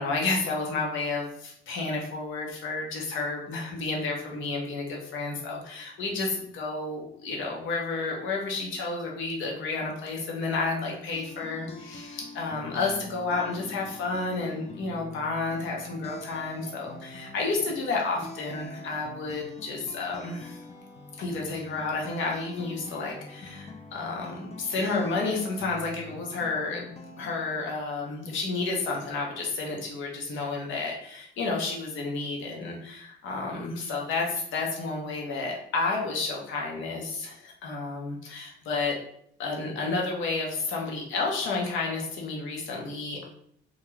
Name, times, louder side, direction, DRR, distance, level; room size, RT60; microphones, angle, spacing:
voice 1, 0.0-20.6 21.2-26.9 27.2-39.0 39.4-43.3, left 3 dB, 80° left, -1 dB, 0.7 m, -31 dB
sound 1, 10.9-27.8, left 2 dB, 30° left, 0.4 m, -45 dB
2.4 x 2.3 x 3.1 m, 0.68 s
cardioid pair, 90°, 20 cm